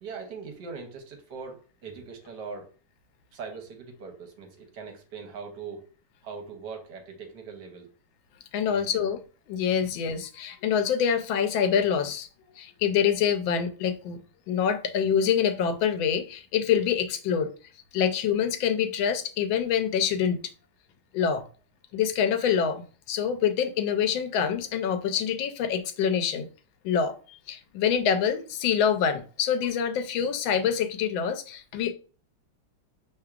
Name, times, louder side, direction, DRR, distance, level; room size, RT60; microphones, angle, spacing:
voice 1, 0.0-2.7 3.3-5.9 6.2-7.9 8.6-9.1 9.7-9.9, right 5 dB, 65° right, 1.4 m, -41 dB
voice 2, 8.5-9.2 9.5-12.3 12.6-14.2 14.5-17.5 17.9-20.4 21.1-21.4 21.9-26.5 26.8-27.1 27.5-31.9, left 8 dB, 90° left, 1.4 m, -26 dB
5.7 x 3.3 x 2.4 m
omnidirectional pair, 2.1 m